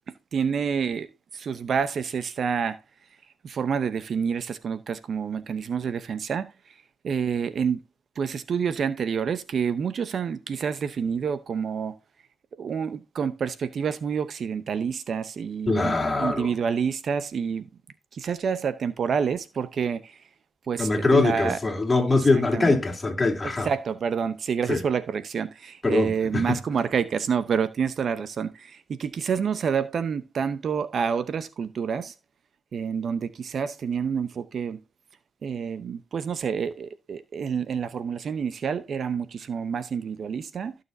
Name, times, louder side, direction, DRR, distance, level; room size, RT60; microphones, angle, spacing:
voice 1, 0.1-1.1 1.3-2.8 3.4-6.5 7.0-7.8 8.2-12.0 12.6-17.7 18.1-20.2 20.7-21.6 22.1-22.7 23.4-32.1 32.7-34.8 35.4-40.8, right 6 dB, 50° right, 0.7 m, -28 dB
voice 2, 15.7-16.5 20.8-23.7 24.7-24.8 25.8-26.4, left 3 dB, 20° left, 3.1 m, -23 dB
15.5 x 6.7 x 2.7 m
cardioid pair, 90°, 0 cm